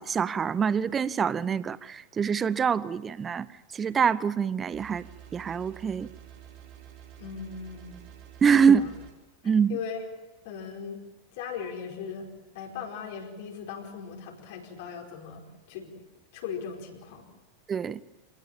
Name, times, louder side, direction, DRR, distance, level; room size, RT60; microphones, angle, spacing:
voice 1, 0.0-3.5 3.7-5.1 5.3-6.1 8.4-8.9 9.4-9.8 17.7-18.0, right 6 dB, 20° right, 0.8 m, -25 dB
sound 1, 4.7-9.1, right 11 dB, 45° right, 3.9 m, -49 dB
voice 2, 7.2-8.0 8.5-8.9 9.7-10.0 10.4-11.0 11.3-16.0 16.3-17.3, left 6 dB, 50° left, 4.8 m, -38 dB
27.0 x 18.5 x 7.3 m
figure-of-eight pair, 90°, 0 cm